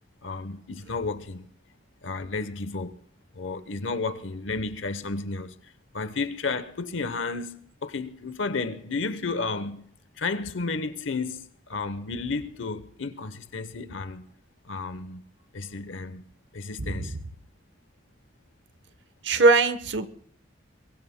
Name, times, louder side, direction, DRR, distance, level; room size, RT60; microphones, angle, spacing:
voice 1, 0.2-1.5 2.0-3.0 3.3-5.6 5.9-9.8 10.2-14.3 14.6-15.2 15.5-16.3 16.5-17.2, left 3 dB, 90° left, 0.9 m, -32 dB
voice 2, 16.8-17.1 19.2-20.1, right 3 dB, 70° right, 1.0 m, -21 dB
23.5 x 22.5 x 2.2 m
head